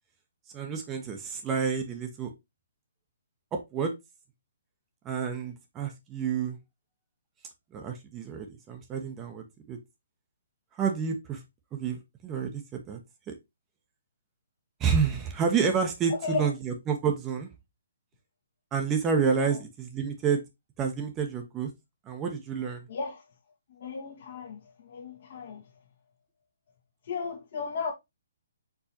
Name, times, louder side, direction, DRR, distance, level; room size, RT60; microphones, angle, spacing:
voice 1, 0.5-2.3 3.5-3.9 5.0-6.6 7.7-9.8 10.8-11.4 11.7-13.0 13.3-13.4 14.8-17.5 18.7-20.4 20.8-21.7 22.1-22.9, right 6 dB, 20° right, 0.8 m, -29 dB
voice 2, 16.1-16.5 19.4-19.6 22.9-23.2 23.7-25.7 27.0-27.9, left 5 dB, 55° left, 1.3 m, -35 dB
4.6 x 4.0 x 2.8 m
hypercardioid pair, 150°, 0 cm